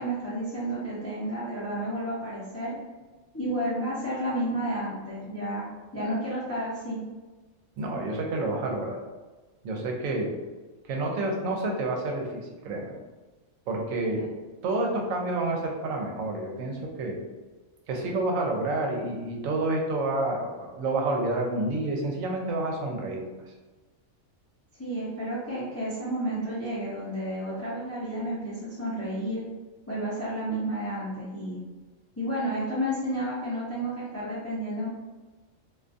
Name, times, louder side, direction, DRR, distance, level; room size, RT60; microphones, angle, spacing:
voice 1, 0.0-2.8 3.3-5.7 5.9-7.0 14.2-14.3 24.8-29.4 29.9-31.6 32.2-34.9, right 1 dB, 25° left, -9 dB, 0.3 m, -31 dB
voice 2, 7.8-9.0 9.6-10.3 10.8-12.9 13.7-14.3 14.6-17.2 17.9-23.5, right 2 dB, 75° right, 1 dB, 0.9 m, -29 dB
2.5 x 2.3 x 2.5 m, 1.2 s
omnidirectional pair, 1.4 m